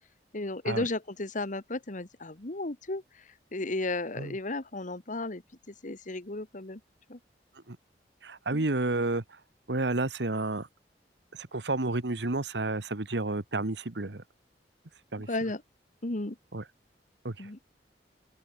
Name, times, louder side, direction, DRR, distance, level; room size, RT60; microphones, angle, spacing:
voice 1, 0.3-5.4 5.7-6.8 7.1-7.2 8.5-8.6 15.3-15.6 16.0-16.4 17.4-17.6, left 2 dB, 45° left, 1.6 m, -34 dB
voice 2, 8.2-9.4 9.7-10.7 11.3-14.2 15.1-15.3 16.5-16.6 17.2-17.5, right 2 dB, 75° right, 1.5 m, -31 dB
open air
head